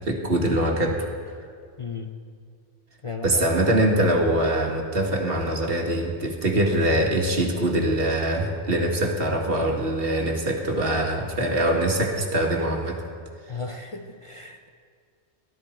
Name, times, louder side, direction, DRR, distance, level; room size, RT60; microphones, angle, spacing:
voice 1, 0.1-1.1 3.2-13.0, right 1 dB, 60° right, 1 dB, 1.9 m, -23 dB
voice 2, 1.8-2.1 3.0-3.4 13.5-14.7, left 4 dB, 35° left, 3 dB, 0.6 m, -35 dB
18.0 x 12.5 x 4.4 m, 2.1 s
omnidirectional pair, 1.1 m